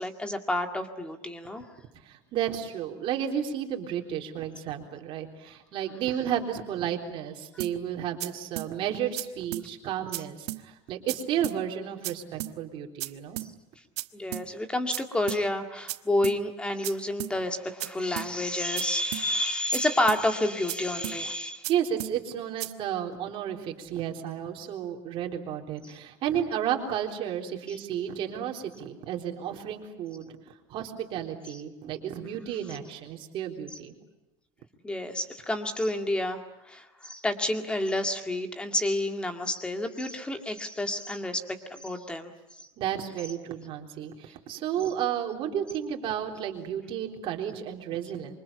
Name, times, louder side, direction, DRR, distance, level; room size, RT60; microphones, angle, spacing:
voice 1, 0.0-1.8 14.1-21.7 25.8-25.9 27.7-27.8 31.5-31.6 34.8-36.4 36.6-42.3 44.8-44.9, left 1 dB, 5° left, 6 dB, 2.0 m, -29 dB
voice 2, 2.0-13.4 21.7-33.9 42.8-48.3, right 9 dB, 35° right, 2 dB, 3.7 m, -32 dB
sound 1, 7.6-7.7 8.2-8.3 8.6-8.7 9.2-9.3 9.5-9.7 10.1-10.2 10.5-10.6 11.1-11.2 11.4-11.6 12.0-12.1 12.4-12.5 13.0-13.1 13.4-13.5 14.0-14.1 14.3-14.5 14.9-15.0 15.3-15.4 15.9-16.0 16.2-16.4 16.8-16.9 17.2-17.3 17.8-17.9 18.2-18.3 18.8-18.9 19.1-19.3 19.7-19.8 20.1-20.2 20.7-20.8 21.0-21.2 21.6-21.7 22.0-22.1 22.6-22.7, right 18 dB, 85° right, 1.4 m, -34 dB
27.0 x 24.5 x 8.6 m, 0.98 s
cardioid pair, 170°, 14 cm